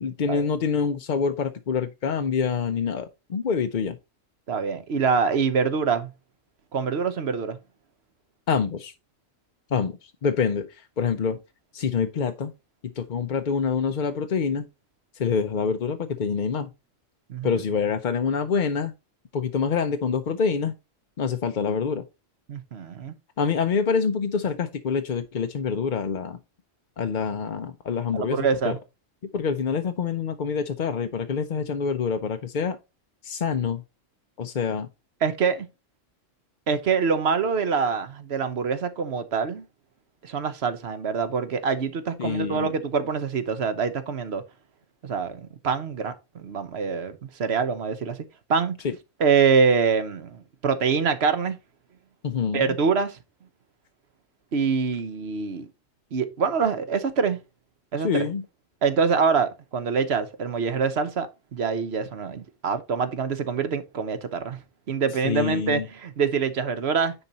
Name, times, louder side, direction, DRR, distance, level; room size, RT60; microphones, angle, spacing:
voice 1, 0.0-4.0 8.5-8.9 9.7-11.4 11.7-12.5 13.0-14.7 15.1-16.7 17.4-18.9 19.3-20.7 21.2-22.1 23.4-26.4 27.0-28.8 29.3-32.8 33.2-33.8 34.4-34.9 42.2-42.7 48.8-48.9 52.2-52.8 58.0-58.4 65.2-65.9, left 6 dB, 50° left, 0.6 m, -26 dB
voice 2, 4.5-6.1 6.7-7.6 17.3-17.6 22.5-23.1 28.1-28.8 35.2-35.7 36.7-39.6 40.2-44.4 45.0-48.2 48.5-48.8 49.2-51.6 52.5-53.2 54.5-55.7 56.1-57.4 57.9-58.2 58.8-64.6 64.9-67.1, right 5 dB, 55° right, 1.2 m, -25 dB
9.8 x 4.4 x 4.0 m
omnidirectional pair, 1.3 m